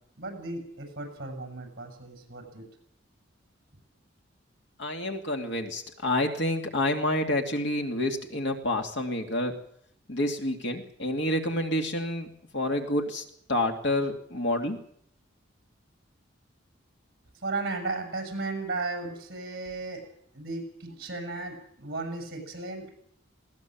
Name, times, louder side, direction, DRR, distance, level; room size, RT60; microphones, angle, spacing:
voice 1, 0.2-2.7 17.4-20.0 20.3-22.9, right 3 dB, 50° right, 4 dB, 7.4 m, -35 dB
voice 2, 4.8-9.5 10.1-13.2 13.5-14.8, left 1 dB, 65° left, 3 dB, 2.7 m, -28 dB
20.5 x 18.5 x 7.7 m, 0.66 s
head